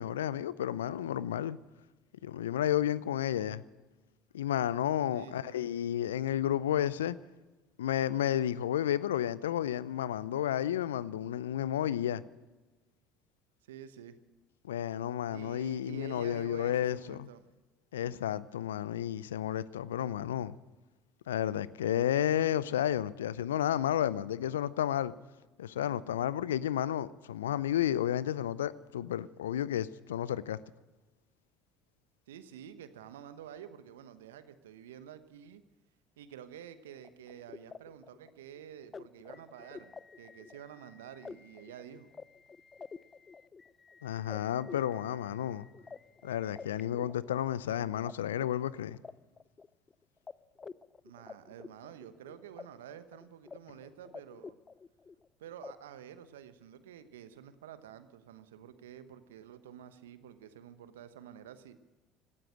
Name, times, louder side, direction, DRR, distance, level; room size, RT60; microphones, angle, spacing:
voice 1, 0.0-1.6 2.2-3.6 4.3-7.2 7.8-12.2 14.6-17.3 17.9-20.6 21.3-25.1 25.6-30.6 44.0-45.6 46.2-49.0, left 11 dB, 80° left, 0.5 m, -32 dB
voice 2, 5.1-5.6 13.7-14.2 15.3-17.4 32.3-35.6 36.2-42.1 51.0-54.6 55.4-61.8, right 9 dB, 75° right, 1.0 m, -49 dB
sound 1, 37.0-48.1 48.4-49.9 50.3-50.4 50.6-52.6 52.9-53.6 53.8-55.2 55.6-55.7, left 5 dB, 30° left, 0.5 m, -49 dB
17.5 x 13.0 x 6.3 m
hypercardioid pair, 60°, 0 cm